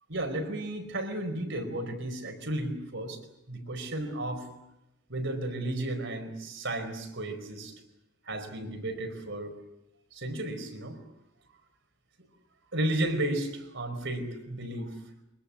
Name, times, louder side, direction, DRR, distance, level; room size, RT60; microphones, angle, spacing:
voice 1, 0.1-3.2 3.5-4.5 5.1-7.7 8.3-9.5 10.1-11.0 12.7-15.0, right 1 dB, 65° right, 6 dB, 4.8 m, -33 dB
24.5 x 22.0 x 8.5 m, 0.89 s
head